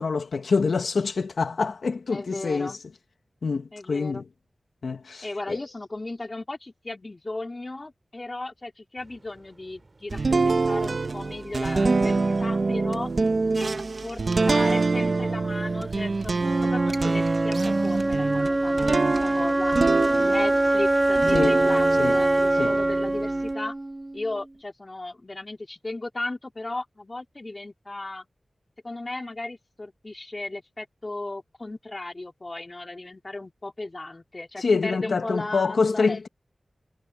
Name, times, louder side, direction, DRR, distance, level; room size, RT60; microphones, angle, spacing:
voice 1, 0.0-2.8 3.4-4.2 4.8-5.6 21.3-21.6 22.0-22.2 22.6-22.8 34.6-36.3, left 4 dB, 90° left, 1.8 m, -26 dB
voice 2, 2.1-2.8 3.7-4.3 5.2-13.1 13.5-13.8 14.0-14.2 14.5-16.3 16.7-19.8 20.2-23.7 24.1-28.3 28.8-36.3, left 2 dB, 30° left, 4.1 m, -35 dB
sound 1, 9.0-23.0, right 2 dB, 40° right, 7.9 m, -51 dB
sound 2, 10.1-20.7 21.1-23.5, right 3 dB, 55° right, 1.0 m, -26 dB
Wind instrument woodwind instrument, 16.4-24.4, right 2 dB, 25° right, 0.5 m, -23 dB
wide cardioid pair, 105°, 0 cm